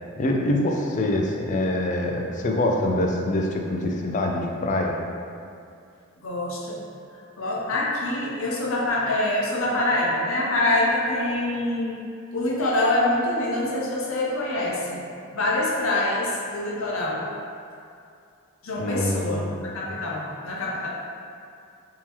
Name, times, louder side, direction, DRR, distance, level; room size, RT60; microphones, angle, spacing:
voice 1, 0.2-5.0 18.8-19.7, left 1 dB, 35° left, 0 dB, 0.3 m, -25 dB
voice 2, 6.2-6.8 7.4-12.0 12.3-15.0 15.3-17.2 18.6-20.9, left 1 dB, 75° left, -4 dB, 0.6 m, -25 dB
3.6 x 2.8 x 3.0 m, 2.4 s
head